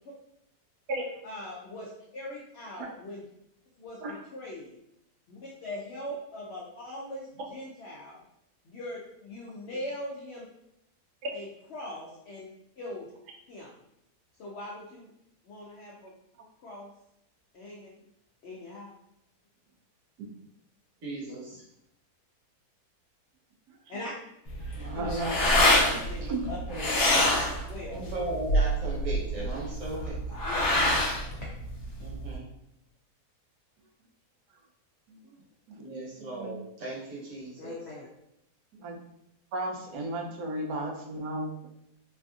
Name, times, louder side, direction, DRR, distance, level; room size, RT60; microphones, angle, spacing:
voice 1, 1.2-3.2 3.8-4.8 5.3-8.2 8.7-10.4 11.3-11.5 11.7-12.5 12.8-13.1 13.5-13.7 14.4-15.1 15.5-16.1 16.6-16.9 17.5-18.0 18.4-19.0 23.9-24.1 24.9-25.1 26.0-26.6 27.5-28.0 30.4-30.7 37.6-38.1, left 1 dB, 85° left, -3 dB, 0.5 m, -41 dB
voice 2, 21.0-21.6 26.4-26.9 27.9-30.4 32.0-32.5 35.8-37.7, right 2 dB, 60° right, -4 dB, 1.2 m, -37 dB
sound 1, 24.5-32.4, left 1 dB, 65° left, 1.1 m, -26 dB
voice 3, 24.8-25.4 25.8-26.5 35.1-35.2 35.7-36.5 38.8-39.0 39.5-41.7, right 1 dB, 85° right, 1 dB, 1.2 m, -35 dB
3.2 x 2.6 x 2.3 m, 0.80 s
omnidirectional pair, 1.7 m